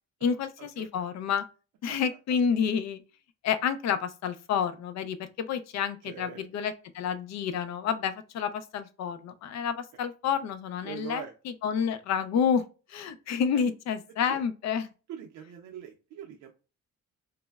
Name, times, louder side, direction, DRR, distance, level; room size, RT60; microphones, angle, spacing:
voice 1, 0.2-1.4 1.8-3.0 3.4-14.9, left 7 dB, 60° left, 0.5 m, -29 dB
voice 2, 6.0-6.4 10.8-11.3 14.3-14.4 15.1-16.5, right 8 dB, 75° right, 0.5 m, -42 dB
3.2 x 2.1 x 2.3 m
cardioid pair, 90°, 30 cm